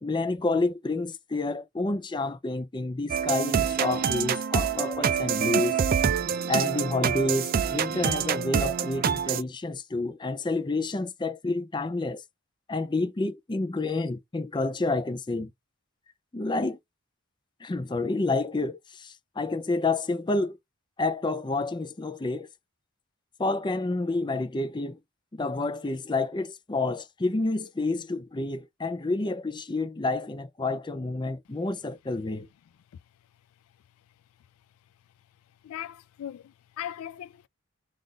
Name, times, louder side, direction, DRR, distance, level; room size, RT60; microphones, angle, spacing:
voice 1, 0.0-5.8 6.5-12.2 12.7-15.5 16.3-16.8 17.6-20.6 21.0-22.5 23.4-25.0 25.3-32.5, left 2 dB, 20° left, 0.5 m, -29 dB
sound 1, 3.1-9.4, right 7 dB, 45° right, 0.4 m, -26 dB
voice 2, 35.6-37.5, left 10 dB, 85° left, 0.3 m, -39 dB
3.8 x 2.5 x 3.2 m
head